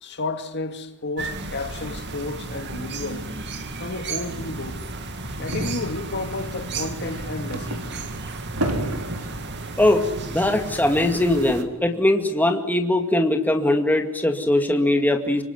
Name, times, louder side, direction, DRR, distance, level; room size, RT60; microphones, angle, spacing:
voice 1, 0.0-3.3 3.8-4.8 5.4-7.8, left 3 dB, 50° left, 2.2 m, -32 dB
sound 1, 1.2-11.6, right 3 dB, 50° right, 2.3 m, -34 dB
sound 2, 4.6-9.6, right 1 dB, 80° right, 3.9 m, -33 dB
voice 2, 9.8-15.4, left 1 dB, 10° left, 2.2 m, -21 dB
25.0 x 24.5 x 9.5 m
head